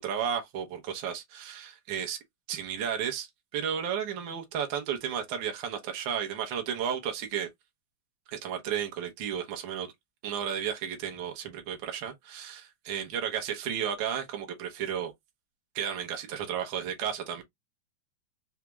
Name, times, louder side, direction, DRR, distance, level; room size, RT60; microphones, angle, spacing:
voice 1, 0.0-2.2 2.5-3.3 3.5-7.5 8.3-9.9 10.2-15.1 15.7-17.4, right 8 dB, 90° right, 1.0 m, -33 dB
4.8 x 2.3 x 3.0 m
omnidirectional pair, 3.5 m